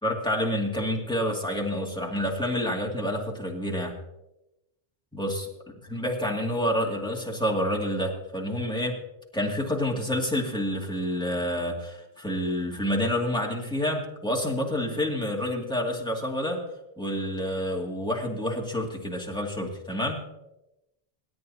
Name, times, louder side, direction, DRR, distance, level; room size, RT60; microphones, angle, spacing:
voice 1, 0.0-3.9 5.1-5.5 5.8-9.0 9.3-16.6 17.0-20.2, equal, 5° left, -2 dB, 2.3 m, -28 dB
27.5 x 9.5 x 2.8 m, 0.91 s
omnidirectional pair, 1.0 m